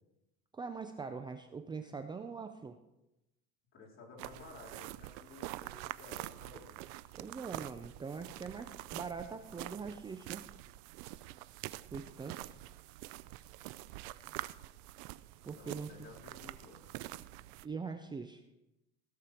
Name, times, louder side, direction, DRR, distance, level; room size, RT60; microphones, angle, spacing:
voice 1, 0.5-2.8 7.1-10.4 11.9-12.5 15.4-15.9 17.6-18.4, right 5 dB, 15° right, 7 dB, 0.5 m, -42 dB
voice 2, 3.7-6.8 15.5-16.8, left 3 dB, 40° left, -3 dB, 3.9 m, -54 dB
sound 1, 4.2-17.6, right 17 dB, 80° right, 0.5 m, -46 dB
16.5 x 6.7 x 4.4 m, 0.93 s
cardioid pair, 130°, 31 cm